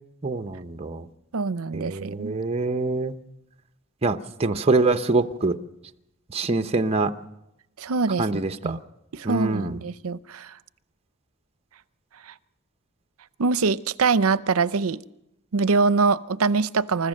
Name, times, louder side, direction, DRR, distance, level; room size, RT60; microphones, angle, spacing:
voice 1, 0.2-1.1 1.7-3.1 4.0-5.6 6.3-7.1 8.2-8.8 9.2-9.8, right 3 dB, 30° right, 8 dB, 0.9 m, -24 dB
voice 2, 1.3-2.3 7.8-8.8 9.1-10.5 12.3-12.4 13.4-15.0 15.5-17.1, right 4 dB, 75° right, 16 dB, 0.6 m, -24 dB
28.0 x 14.5 x 6.5 m, 0.88 s
head